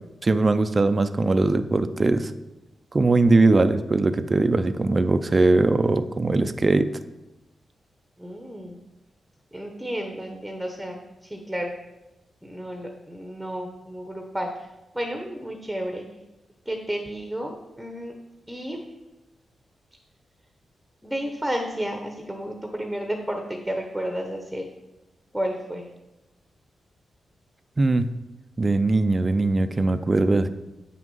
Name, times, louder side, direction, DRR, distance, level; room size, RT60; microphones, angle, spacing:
voice 1, 0.2-2.3 2.9-6.9 27.8-28.1 28.6-30.5, right 3 dB, 25° right, 10 dB, 0.4 m, -20 dB
voice 2, 8.2-8.8 9.5-11.0 11.2-11.7 12.4-14.7 14.9-16.0 16.7-18.2 18.5-18.8 21.0-24.7 25.3-25.9, equal, 5° right, 3 dB, 0.9 m, -31 dB
8.4 x 6.1 x 5.4 m, 1.0 s
wide cardioid pair, 130°, 0 cm